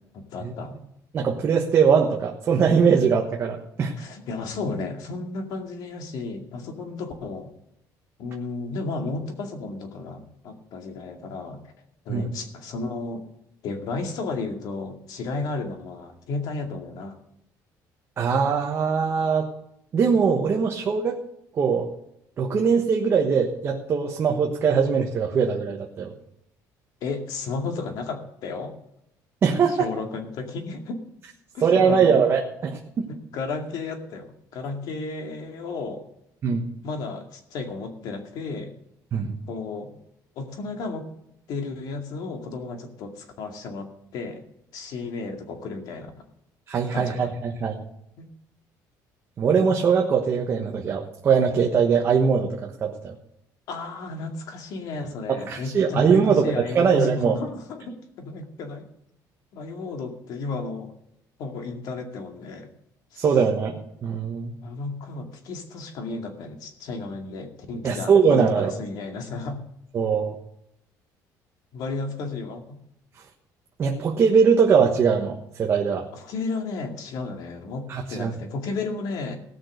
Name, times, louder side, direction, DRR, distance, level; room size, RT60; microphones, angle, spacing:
voice 1, 0.1-0.8 4.0-7.5 8.2-11.6 12.1-13.2 13.6-17.2 27.0-28.7 29.7-31.0 31.5-32.2 33.1-36.0 36.8-38.7 39.5-39.9 40.4-41.1 41.5-44.4 44.7-46.2 46.9-47.2 48.2-48.3 53.7-58.9 59.5-60.9 61.4-62.7 63.1-63.2 64.6-69.6 71.7-72.8 76.1-79.4, left 3 dB, 60° left, 4 dB, 2.3 m, -33 dB
voice 2, 1.1-3.9 12.1-12.3 18.2-19.5 19.9-21.2 21.6-21.9 22.4-26.1 29.4-29.8 31.6-33.1 36.4-36.7 39.1-39.3 46.7-47.7 49.4-53.1 55.5-57.4 63.2-64.5 67.8-68.7 69.9-70.4 73.8-76.1 77.9-78.3, right 6 dB, 35° right, 1 dB, 1.3 m, -21 dB
17.5 x 6.2 x 6.6 m, 0.79 s
cardioid pair, 155°, 7 cm